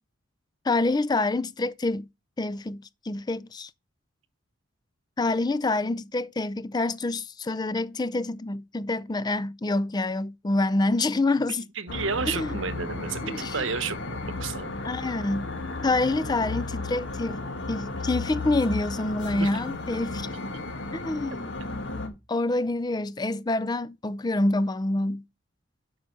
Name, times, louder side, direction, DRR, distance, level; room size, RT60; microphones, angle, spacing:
voice 1, 0.6-2.1 2.4-3.7 5.2-11.7 12.2-12.5 13.2-13.6 14.8-15.5 15.8-20.3 20.9-25.2, left 2 dB, 20° left, 0.4 m, -27 dB
voice 2, 11.8-14.7 19.4-19.5, right 5 dB, 75° right, 0.9 m, -31 dB
sound 1, 11.9-22.1, left 3 dB, 60° left, 1.8 m, -34 dB
7.8 x 5.3 x 6.4 m
head